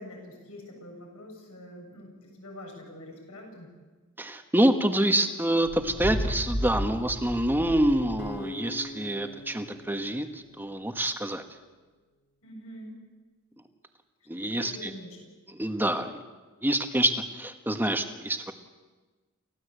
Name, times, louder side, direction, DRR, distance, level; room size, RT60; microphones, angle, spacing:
voice 1, 0.0-3.7 12.4-13.0 14.4-15.3, left 1 dB, 70° left, 1 dB, 7.6 m, -45 dB
voice 2, 4.2-10.3 10.6-11.4 14.3-14.9 15.5-16.2 16.6-18.5, right 1 dB, 10° right, 6 dB, 1.5 m, -26 dB
sound 1, 5.6-8.4, equal, 25° left, 2.3 m, -33 dB
sound 2, 8.2-11.4, equal, 50° left, 2.7 m, -43 dB
29.0 x 15.5 x 8.2 m, 1.3 s
head